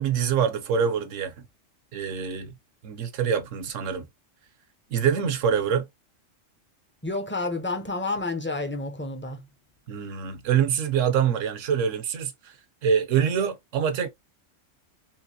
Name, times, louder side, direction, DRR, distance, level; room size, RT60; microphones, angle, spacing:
voice 1, 0.0-1.5 1.9-2.5 2.8-4.1 4.9-5.9 9.9-12.5 12.8-14.1, right 7 dB, 75° right, 1.1 m, -25 dB
voice 2, 7.0-9.5, left 2 dB, 15° left, 0.4 m, -30 dB
3.7 x 2.8 x 2.7 m
omnidirectional pair, 1.3 m